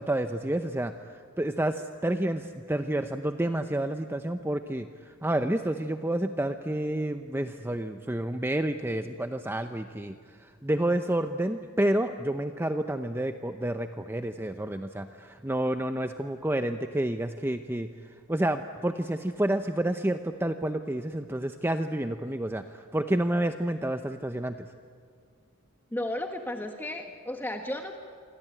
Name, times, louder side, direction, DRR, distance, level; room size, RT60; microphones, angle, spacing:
voice 1, 0.0-17.9 18.3-24.7, right 1 dB, 10° right, 7 dB, 0.7 m, -29 dB
voice 2, 25.9-28.0, left 1 dB, 10° left, 4 dB, 1.5 m, -34 dB
27.0 x 24.5 x 9.0 m, 2.2 s
head